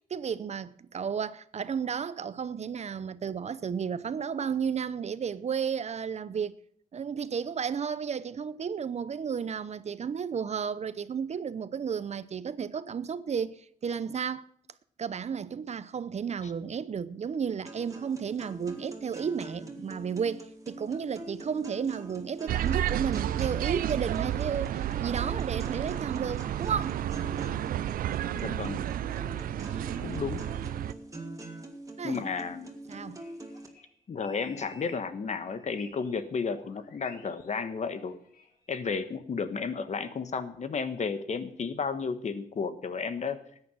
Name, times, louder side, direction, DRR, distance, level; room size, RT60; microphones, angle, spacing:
voice 1, 0.1-6.5 6.9-14.4 15.0-27.0 29.6-30.1 32.0-32.3 32.9-33.2, right 7 dB, 50° right, 0.7 m, -33 dB
sound 1, 17.7-33.7, right 1 dB, 20° right, 2.6 m, -44 dB
sound 2, 22.5-30.9, right 12 dB, 85° right, 0.5 m, -31 dB
voice 2, 28.3-28.9 30.0-30.4 32.0-32.7 34.1-38.2 38.7-43.4, left 5 dB, 55° left, 1.4 m, -33 dB
sound 3, 32.9-36.2 36.5-39.0, left 4 dB, 85° left, 2.1 m, -55 dB
14.0 x 9.5 x 6.2 m
cardioid pair, 75°, 14 cm